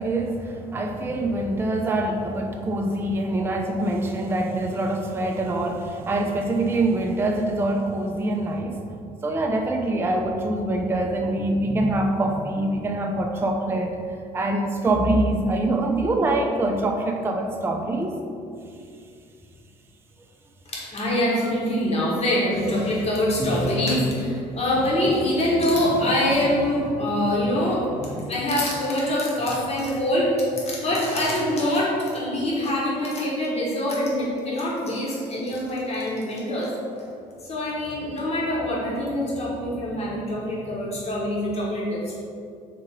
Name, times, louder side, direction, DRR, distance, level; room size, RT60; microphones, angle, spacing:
voice 1, 0.0-8.8 9.2-13.9 14.3-18.2 23.4-23.8, right 2 dB, 10° right, 2 dB, 0.4 m, -24 dB
voice 2, 20.7-36.7 37.4-42.1, left 1 dB, 35° left, -5 dB, 1.2 m, -24 dB
3.2 x 2.9 x 4.6 m, 2.4 s
hypercardioid pair, 55°, 20 cm